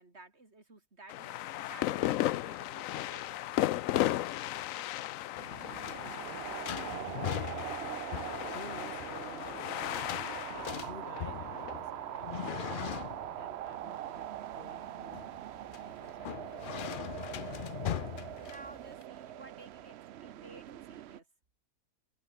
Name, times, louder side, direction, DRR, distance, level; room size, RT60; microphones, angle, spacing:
voice 1, 0.0-3.3 18.4-21.3, right 2 dB, 45° right, 4.0 m, -54 dB
sound 1, 1.1-12.6, left 14 dB, 70° left, 0.9 m, -35 dB
sound 2, 5.4-19.0, left 10 dB, 85° left, 0.4 m, -41 dB
sound 3, 5.4-21.2, right 12 dB, 65° right, 0.6 m, -42 dB
voice 2, 5.5-7.6 8.5-10.2 10.7-12.3 13.2-15.2 15.7-16.8 17.6-17.8, left 5 dB, 40° left, 1.5 m, -53 dB
omnidirectional pair, 1.5 m